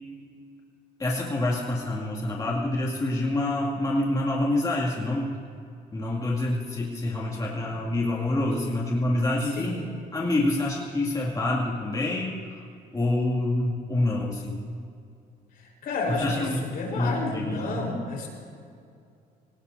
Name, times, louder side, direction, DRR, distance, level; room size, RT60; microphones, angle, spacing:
voice 1, 1.0-5.3 5.9-9.7 10.1-12.6 12.9-14.6 16.1-18.0, left 1 dB, 20° left, -4 dB, 2.5 m, -27 dB
voice 2, 9.6-9.9 15.5-18.3, left 3 dB, 60° left, -1 dB, 4.5 m, -31 dB
24.5 x 19.0 x 2.8 m, 2.3 s
cardioid pair, 110°, 17 cm